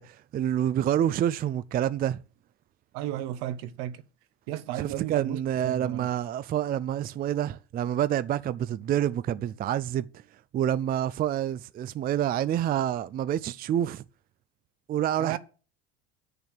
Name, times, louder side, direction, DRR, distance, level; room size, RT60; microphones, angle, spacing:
voice 1, 0.0-2.2 4.8-10.1 10.5-14.0 14.9-15.4, right 11 dB, 30° right, 0.4 m, -27 dB
voice 2, 2.9-4.0 4.5-6.1 15.2-15.4, right 13 dB, 70° right, 1.1 m, -33 dB
8.6 x 6.7 x 6.5 m
supercardioid pair, 90°, 31 cm